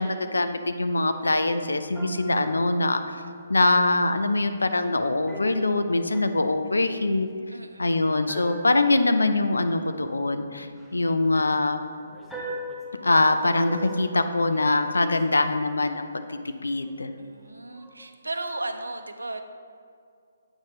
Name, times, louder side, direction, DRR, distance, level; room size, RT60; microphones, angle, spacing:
voice 1, 0.0-3.2 3.5-7.3 7.8-11.8 13.0-17.1, left 2 dB, 80° left, 9 dB, 0.5 m, -23 dB
sound 1, 0.6-0.7 1.9-4.2 5.3-7.6 8.3-15.9 16.5-17.4 17.7-18.1, equal, ahead, 0.7 m, -43 dB
voice 2, 7.5-8.2 17.2-19.4, right 2 dB, 85° right, 7 dB, 0.5 m, -35 dB
8.0 x 5.7 x 3.2 m, 2.2 s
figure-of-eight pair, 140°, 0 cm